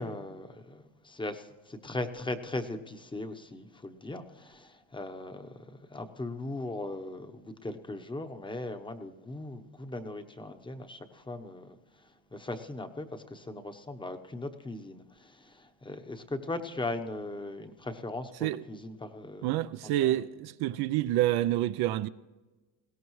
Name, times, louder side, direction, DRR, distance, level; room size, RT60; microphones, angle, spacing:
voice 1, 0.0-5.5 5.9-11.8 12.3-19.5 19.8-20.1, left 2 dB, 10° left, 0.9 m, -39 dB
voice 2, 19.4-22.1, right 14 dB, 60° right, 0.5 m, -28 dB
20.5 x 17.0 x 3.1 m
supercardioid pair, 110°, 44 cm